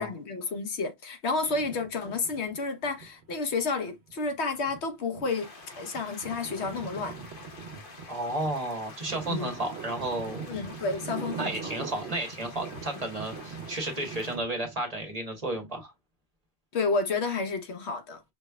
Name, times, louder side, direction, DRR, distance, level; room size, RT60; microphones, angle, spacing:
voice 1, 0.0-5.5 5.7-7.2 9.3-9.5 10.5-11.5 16.7-18.2, left 4 dB, 85° left, 1.3 m, -30 dB
sound 1, 1.4-3.5 4.1-14.9, right 6 dB, 75° right, 1.1 m, -42 dB
sound 2, 5.2-14.4, left 3 dB, 55° left, 1.3 m, -48 dB
voice 2, 8.1-10.4 11.3-15.9, right 2 dB, 35° right, 1.4 m, -32 dB
5.9 x 3.2 x 2.2 m
omnidirectional pair, 1.1 m